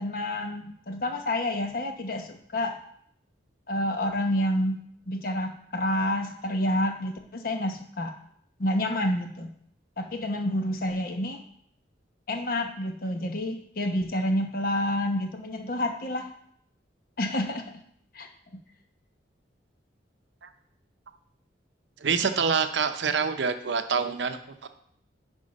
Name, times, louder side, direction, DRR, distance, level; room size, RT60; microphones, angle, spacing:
voice 1, 0.0-2.7 3.7-8.1 8.6-9.5 10.0-11.4 12.3-16.3 17.2-17.7 18.1-18.6, left 1 dB, 50° left, 5 dB, 0.9 m, -29 dB
voice 2, 22.0-24.7, right 5 dB, 75° right, 9 dB, 0.7 m, -26 dB
10.5 x 3.7 x 5.3 m, 0.66 s
head